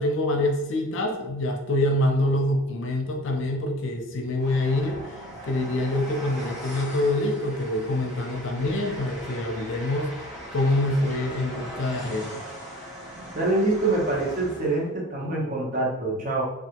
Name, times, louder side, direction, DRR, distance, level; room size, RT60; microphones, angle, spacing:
voice 1, 0.0-10.3 10.5-12.4, left 1 dB, 70° left, 3 dB, 0.5 m, -26 dB
Train, 4.4-14.9, equal, ahead, 0.8 m, -39 dB
voice 2, 13.3-16.4, right 2 dB, 40° right, -3 dB, 0.8 m, -25 dB
3.2 x 2.4 x 2.8 m, 0.91 s
head